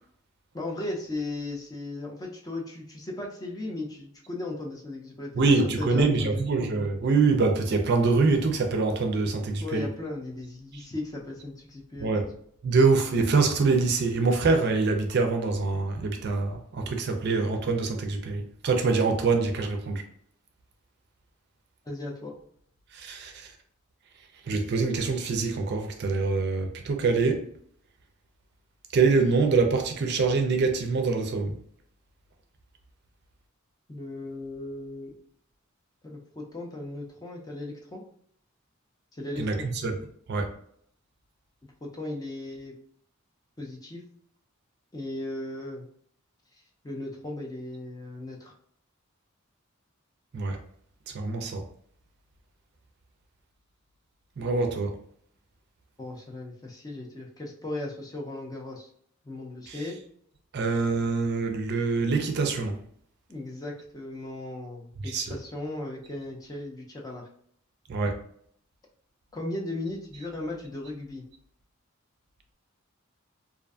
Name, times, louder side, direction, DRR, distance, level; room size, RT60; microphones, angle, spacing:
voice 1, 0.5-5.5 5.8-6.4 9.6-12.3 21.8-22.3 33.9-35.1 36.0-38.0 39.1-39.7 41.8-42.7 43.6-44.0 44.9-45.9 46.8-48.5 56.0-58.9 59.2-60.0 63.3-67.3 69.3-71.2, left 2 dB, 15° left, 0.4 m, -36 dB
voice 2, 5.4-9.9 10.7-10.8 12.0-12.2 12.6-20.0 22.9-23.5 24.5-27.4 28.9-31.5 39.4-39.9 40.3-40.5 50.3-50.6 51.1-51.6 54.4-54.9 59.7-59.8 60.5-62.8 65.0-65.3 67.9-68.2, right 4 dB, 50° right, 0.4 m, -25 dB
2.4 x 2.4 x 2.3 m
head